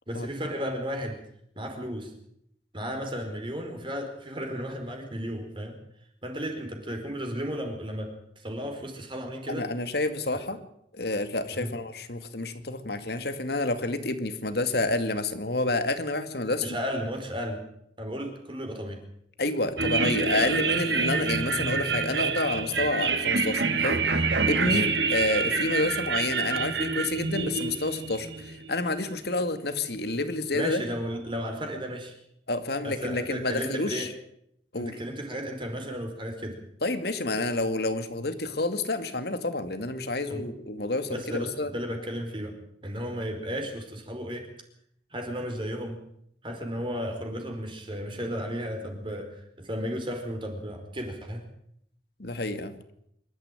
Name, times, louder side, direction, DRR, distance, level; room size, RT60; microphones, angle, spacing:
voice 1, 0.1-1.2 1.6-2.1 2.7-5.8 6.2-9.7 11.5-11.8 16.6-17.6 18.0-19.0 24.7-24.8 30.5-32.2 32.8-34.1 34.7-36.6 40.3-40.4 41.1-42.6 42.8-44.5 45.1-46.0 46.4-51.4, equal, 30° right, 4 dB, 4.6 m, -34 dB
voice 2, 9.5-10.6 11.0-16.6 19.4-24.0 24.5-30.8 32.5-34.1 34.7-35.0 36.8-41.7 52.2-52.7, left 2 dB, 60° left, 9 dB, 2.4 m, -29 dB
sound 1, 19.8-29.1, right 4 dB, 70° right, 2.0 m, -27 dB
25.5 x 13.5 x 9.1 m, 0.74 s
head